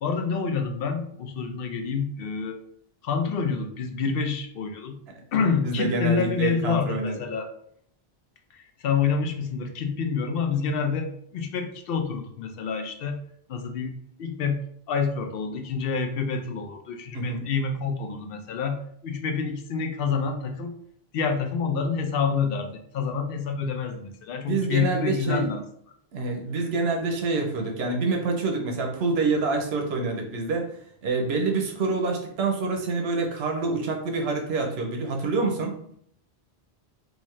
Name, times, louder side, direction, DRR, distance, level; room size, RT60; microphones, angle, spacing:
voice 1, 0.0-2.6 3.0-5.0 5.3-7.5 8.5-13.2 13.5-14.6 14.9-20.7 21.1-25.6, left 5 dB, 70° left, 5 dB, 0.7 m, -28 dB
voice 2, 5.6-7.2 17.1-17.5 24.4-25.5 26.1-30.8 31.0-35.7, right 3 dB, 85° right, 2 dB, 0.9 m, -26 dB
4.0 x 2.4 x 3.1 m, 0.67 s
omnidirectional pair, 1.0 m